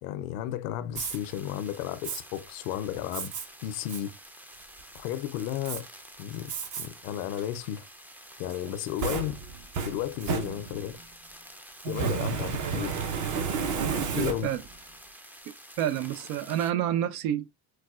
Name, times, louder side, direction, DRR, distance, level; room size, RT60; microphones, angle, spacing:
voice 1, 0.0-3.3 3.6-4.1 4.9-5.9 6.2-7.9 8.4-9.4 9.8-11.0 11.9-12.9 14.1-14.5, left 11 dB, 85° left, 0.5 m, -33 dB
Fire, 0.9-1.2 2.0-2.2 3.1-3.5 3.9-4.0 4.5-5.0 5.7-5.8 6.5-6.9 7.3-7.4 8.5-11.0 11.9-14.7, right 6 dB, 45° right, 0.7 m, -32 dB
sound 1, 1.0-16.7, equal, 5° right, 0.3 m, -49 dB
voice 2, 11.8-12.3 13.8-14.6 15.8-17.5, right 11 dB, 90° right, 0.6 m, -30 dB
4.7 x 2.2 x 2.3 m
supercardioid pair, 95°, 42 cm